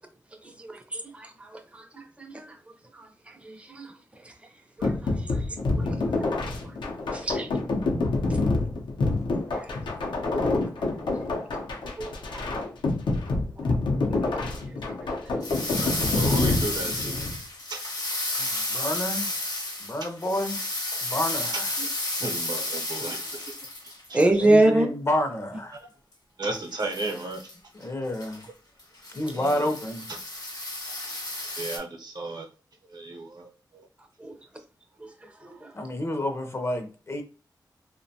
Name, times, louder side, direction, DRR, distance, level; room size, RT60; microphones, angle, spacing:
voice 1, 0.6-1.3 1.7-2.4 3.8-3.9 4.8-4.9 7.1-7.5 12.0-12.1 14.2-14.3 15.3-15.5 24.1-24.9 34.2-34.3 35.4-35.5, right 2 dB, 15° right, 0.5 m, -23 dB
sound 1, 4.8-17.4, left 3 dB, 90° left, 0.6 m, -27 dB
sound 2, 15.4-24.3 26.5-27.5 27.8-27.9 28.1-28.4 28.8-31.8, left 1 dB, 55° left, 0.8 m, -32 dB
voice 2, 15.8-17.2 17.7-17.8 18.4-18.9 22.2-23.5 24.1-24.2 25.7-25.9 26.4-27.4 29.3-29.7 31.6-32.5 32.9-33.5 33.7-33.9, right 2 dB, 60° right, 0.7 m, -34 dB
voice 3, 18.4-19.3 19.8-20.7 21.0-21.7 24.2-25.7 27.7-28.5 29.1-30.1 35.7-37.2, left 1 dB, 35° left, 0.5 m, -29 dB
2.5 x 2.1 x 2.7 m
wide cardioid pair, 95°, 8 cm